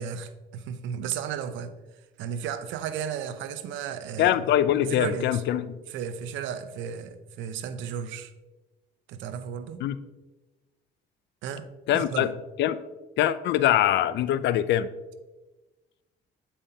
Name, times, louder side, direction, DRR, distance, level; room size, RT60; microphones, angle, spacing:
voice 1, 0.0-1.7 2.2-4.5 4.7-5.4 5.9-8.3 9.1-9.8 11.4-11.7 11.9-12.3, right 8 dB, 80° right, 11 dB, 0.6 m, -34 dB
voice 2, 4.2-5.8 9.8-10.0 11.9-12.3 12.6-12.8 13.2-14.9, left 12 dB, 65° left, 15 dB, 0.4 m, -23 dB
8.3 x 5.6 x 2.8 m, 1.1 s
cardioid pair, 80°, 19 cm